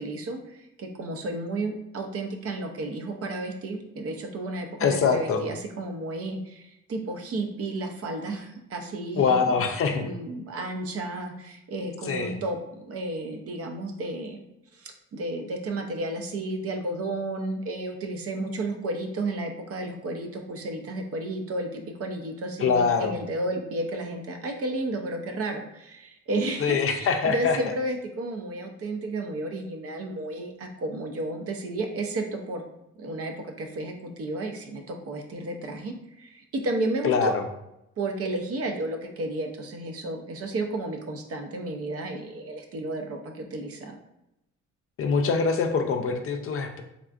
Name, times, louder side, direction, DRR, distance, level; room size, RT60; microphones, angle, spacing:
voice 1, 0.0-9.6 9.9-14.4 14.7-32.6 33.0-37.3 38.0-43.9, right 2 dB, 50° right, 4 dB, 0.6 m, -32 dB
voice 2, 4.8-5.4 9.2-10.1 12.1-12.3 22.6-23.1 26.6-27.6 37.0-37.4 45.0-46.8, left 5 dB, 50° left, 5 dB, 0.4 m, -24 dB
3.5 x 2.4 x 2.4 m, 0.86 s
cardioid pair, 90°, 30 cm